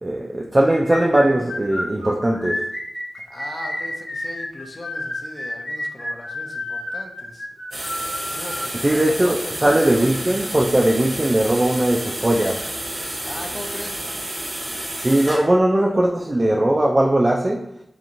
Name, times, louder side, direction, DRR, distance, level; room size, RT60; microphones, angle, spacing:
voice 1, 0.0-2.7 8.8-9.4 9.6-12.7 15.0-17.7, right 1 dB, 30° right, 0.3 m, -19 dB
sound 1, 0.7-8.7, left 1 dB, 65° left, 1.1 m, -30 dB
voice 2, 3.1-7.5 8.3-10.1 13.3-14.1, left 1 dB, 40° left, 0.4 m, -38 dB
sound 2, 7.7-15.4, right 1 dB, 55° right, 0.8 m, -30 dB
2.9 x 2.4 x 2.5 m
cardioid pair, 55°, 0 cm